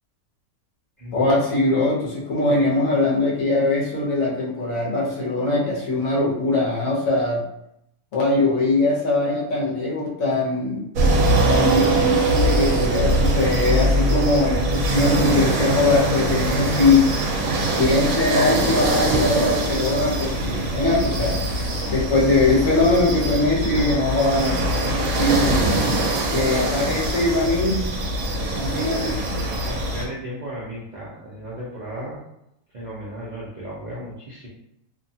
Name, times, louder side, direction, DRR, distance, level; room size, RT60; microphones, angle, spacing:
voice 1, 1.1-7.4 8.1-10.9 11.5-17.1 17.7-21.4 21.9-24.6 25.0-25.6 26.3-27.9 28.5-29.2, left 2 dB, 70° left, -4 dB, 1.1 m, -21 dB
sound 1, 11.0-30.1, right 1 dB, 75° right, 1.0 m, -22 dB
voice 2, 26.2-27.1 28.7-32.2 32.7-34.5, equal, 55° right, -7 dB, 0.5 m, -35 dB
2.7 x 2.2 x 2.6 m, 0.79 s
omnidirectional pair, 1.5 m